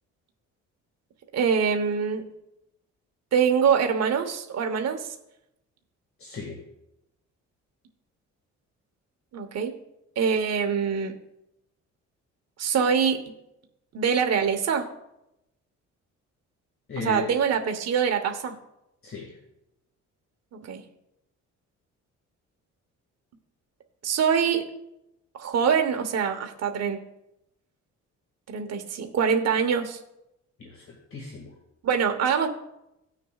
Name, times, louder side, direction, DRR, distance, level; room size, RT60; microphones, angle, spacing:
voice 1, 1.3-2.2 3.3-5.1 9.3-9.7 10.2-11.1 12.6-13.2 13.9-14.9 17.0-18.5 20.5-20.8 24.0-24.7 25.4-27.0 28.5-30.0 31.8-32.5, right 7 dB, 55° right, 4 dB, 1.1 m, -24 dB
voice 2, 6.2-6.6 16.9-17.3 19.0-19.4 30.6-31.5, left 4 dB, 45° left, 0 dB, 2.1 m, -36 dB
17.5 x 6.5 x 2.4 m, 0.86 s
cardioid pair, 90°, 30 cm